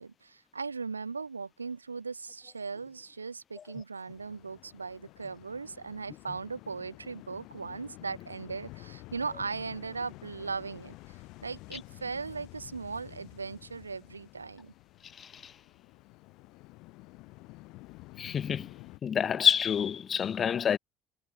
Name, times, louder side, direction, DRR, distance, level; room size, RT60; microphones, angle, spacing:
voice 1, 0.0-14.7, right 4 dB, 85° right, 3.8 m, -38 dB
sound 1, 4.1-19.0, left 22 dB, 60° left, 5.2 m, -50 dB
voice 2, 15.1-15.5 18.2-18.7 19.0-20.8, left 8 dB, 35° left, 1.1 m, -28 dB
figure-of-eight pair, 60°, 0 cm